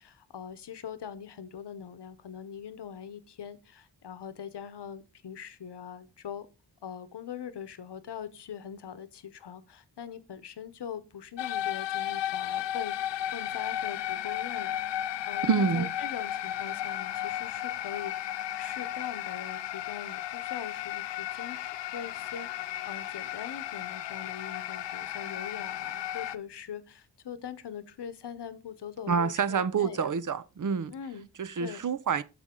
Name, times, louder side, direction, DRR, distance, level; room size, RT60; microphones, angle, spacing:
voice 1, 0.0-6.5 6.8-18.1 18.5-30.1 30.9-31.3 31.6-31.8, left 8 dB, 70° left, 1.0 m, -42 dB
sound 1, 11.4-26.4, left 12 dB, 90° left, 0.5 m, -34 dB
voice 2, 15.4-15.9 29.1-30.9 31.4-32.2, right 6 dB, 50° right, 0.6 m, -27 dB
6.8 x 6.5 x 3.7 m
cardioid pair, 60°, 42 cm